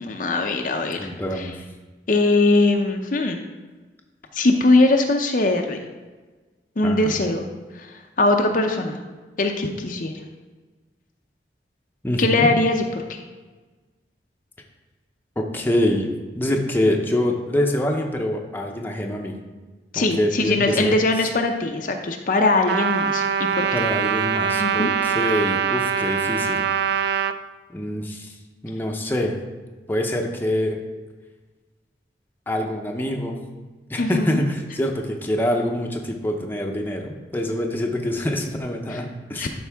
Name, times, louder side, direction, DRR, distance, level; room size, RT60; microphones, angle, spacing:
voice 1, 0.0-1.1 1.4-1.5 2.1-3.4 4.3-5.8 6.8-7.5 7.8-9.0 9.4-10.1 12.2-13.2 19.9-23.7 24.6-24.9 34.0-34.4 39.4-39.5, left 2 dB, 50° left, 3 dB, 0.6 m, -21 dB
voice 2, 1.0-1.5 6.8-7.2 12.0-12.5 15.4-19.3 19.9-21.0 23.7-26.7 27.7-28.4 28.6-29.3 29.9-30.8 32.5-33.4 33.9-39.5, left 1 dB, 10° left, 1 dB, 0.7 m, -25 dB
Trumpet, 22.7-27.4, right 7 dB, 65° right, 0.3 m, -23 dB
12.0 x 4.7 x 3.5 m, 1.3 s
head